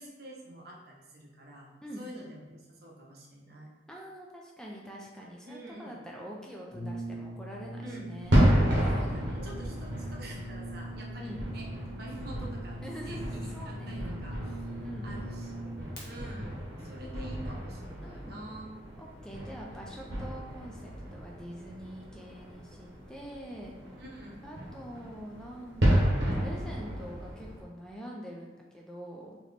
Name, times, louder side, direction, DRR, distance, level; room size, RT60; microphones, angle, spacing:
voice 1, 0.0-3.7 5.5-6.0 7.8-8.1 8.9-11.7 12.0-14.7 15.0-18.7 24.0-24.4, right 1 dB, 60° right, -1 dB, 0.8 m, -47 dB
voice 2, 3.9-9.2 11.2-11.4 12.8-14.1 14.8-15.4 17.0-17.1 18.0-18.4 19.0-23.8 24.4-29.4, equal, 5° left, -2 dB, 0.4 m, -45 dB
Brass instrument, 6.7-16.0, right 1 dB, 60° left, 1.1 m, -41 dB
sound 1, 8.2-27.6, equal, 90° right, 1.1 m, -32 dB
4.1 x 3.0 x 3.2 m, 1.1 s
head